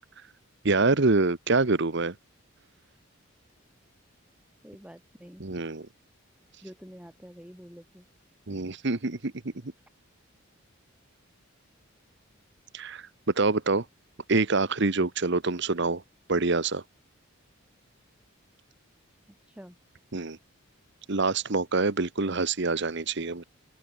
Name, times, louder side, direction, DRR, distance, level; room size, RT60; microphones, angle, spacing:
voice 1, 0.6-2.1 5.4-5.9 8.5-9.3 12.7-13.1 13.3-13.8 14.3-16.0 16.3-16.8 20.1-20.4 21.1-23.4, right 3 dB, 55° right, 1.1 m, -25 dB
voice 2, 4.6-5.5 6.6-8.1 19.5-19.8, equal, 5° right, 2.2 m, -47 dB
open air
head